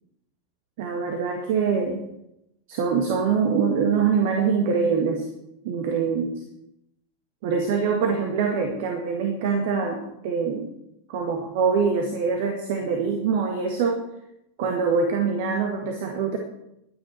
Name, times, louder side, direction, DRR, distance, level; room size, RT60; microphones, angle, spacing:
voice 1, 0.8-2.0 2.7-5.3 5.6-6.3 7.4-10.7 11.1-14.0 14.6-16.4, right 5 dB, 50° right, 4 dB, 1.9 m, -24 dB
21.5 x 9.3 x 4.5 m, 0.83 s
figure-of-eight pair, 90°, 0 cm